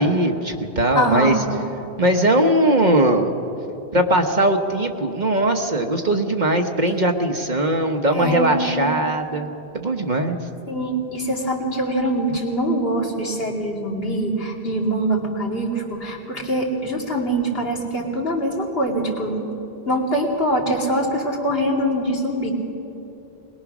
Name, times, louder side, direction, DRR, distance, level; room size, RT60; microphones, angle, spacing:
voice 1, 0.0-1.3 2.0-3.3 3.9-10.4, right 1 dB, 45° right, 5 dB, 1.2 m, -20 dB
voice 2, 0.9-1.5 8.1-8.9 10.7-19.5 19.9-22.5, right 1 dB, 65° left, -1 dB, 2.8 m, -23 dB
22.0 x 20.0 x 6.0 m, 2.9 s
omnidirectional pair, 1.1 m